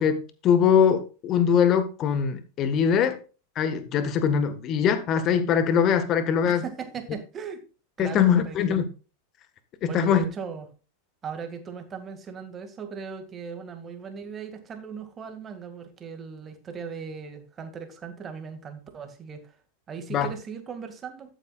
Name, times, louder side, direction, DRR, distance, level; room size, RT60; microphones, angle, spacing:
voice 1, 0.0-3.2 3.5-6.6 8.0-8.9 9.8-10.2 20.1-20.3, left 7 dB, 35° left, 1.5 m, -22 dB
voice 2, 6.4-7.6 8.0-8.8 9.8-10.7 11.2-19.5 19.9-21.3, right 6 dB, 25° right, 2.2 m, -38 dB
12.5 x 9.3 x 2.4 m
figure-of-eight pair, 90°, 0 cm